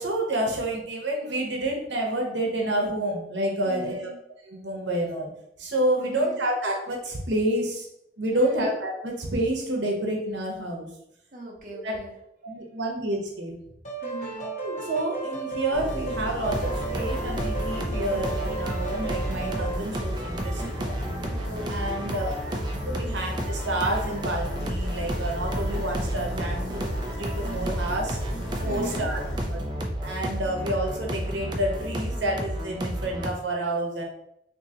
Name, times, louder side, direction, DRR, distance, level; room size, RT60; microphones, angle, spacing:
voice 1, 0.0-4.1 4.5-5.3 5.6-7.9 8.2-10.9 11.8-12.0 12.4-13.6 14.4-20.9 21.7-22.3 22.9-28.2 28.6-29.2 29.5-29.6 30.0-34.0, right 1 dB, 75° right, 0 dB, 0.8 m, -29 dB
voice 2, 3.6-4.2 6.0-6.4 8.3-8.7 11.3-12.1 14.0-14.5 21.3-21.8 22.9-23.1 28.6-29.1, equal, 45° right, -1 dB, 0.7 m, -39 dB
sound 1, 13.8-19.8, right 3 dB, 40° left, 0.7 m, -34 dB
sound 2, 15.7-29.4, equal, 80° left, 0.8 m, -35 dB
sound 3, 16.4-33.3, right 1 dB, 25° right, 0.3 m, -32 dB
3.6 x 2.7 x 2.8 m, 0.78 s
head